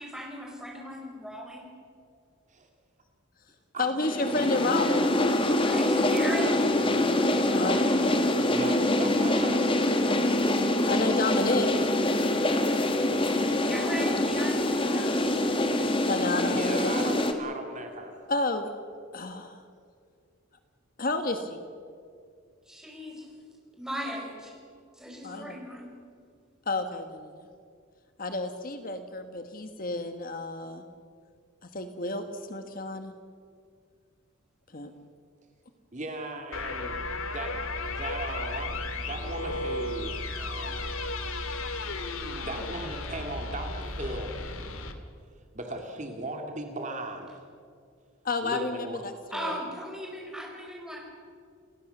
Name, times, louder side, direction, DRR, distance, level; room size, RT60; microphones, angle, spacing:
voice 1, 0.0-1.6 5.6-6.6 13.6-15.2 22.7-23.3 23.8-24.5 24.9-25.9 49.3-51.0, equal, 5° right, -1 dB, 5.4 m, -37 dB
voice 2, 3.8-5.1 7.5-8.2 10.6-11.7 16.1-16.9 18.3-18.7 19.1-19.6 21.0-21.6 25.2-25.6 26.7-27.5 28.2-30.8 31.7-33.1 34.7-34.9 48.2-49.5, left 2 dB, 40° left, 7 dB, 1.4 m, -31 dB
sound 1, 4.0-17.3, left 1 dB, 25° left, 1.7 m, -25 dB
voice 3, 4.3-4.8 8.5-9.8 16.5-18.2 35.9-37.0 37.3-40.9 42.4-44.4 45.5-47.4 48.4-49.0, right 2 dB, 35° right, 3 dB, 2.3 m, -37 dB
sound 2, 36.5-44.9, left 2 dB, 80° left, 2.2 m, -34 dB
29.5 x 17.0 x 6.8 m, 2.2 s
head